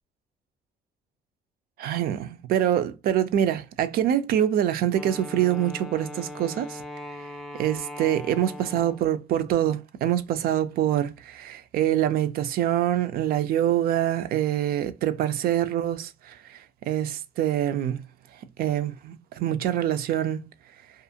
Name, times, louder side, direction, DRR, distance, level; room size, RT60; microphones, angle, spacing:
voice 1, 1.8-6.8 7.6-18.0 18.6-20.4, right 11 dB, 65° right, 0.4 m, -25 dB
Wind instrument woodwind instrument, 4.9-9.2, left 1 dB, ahead, 0.4 m, -40 dB
2.4 x 2.4 x 2.7 m
cardioid pair, 110°, 17 cm